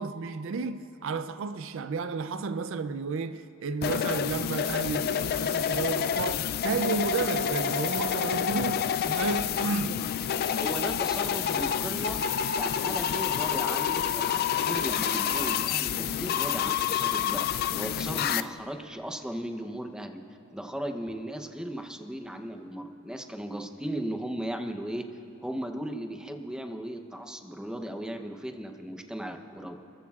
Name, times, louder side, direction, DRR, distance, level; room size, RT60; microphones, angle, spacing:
voice 1, 0.0-10.1, right 4 dB, 65° right, 0.4 m, -32 dB
sound 1, 3.8-18.4, left 8 dB, 45° left, 0.3 m, -28 dB
voice 2, 10.6-12.2 12.5-20.2 20.5-25.1 25.4-29.8, right 1 dB, 5° right, 0.7 m, -36 dB
28.5 x 14.5 x 2.4 m
head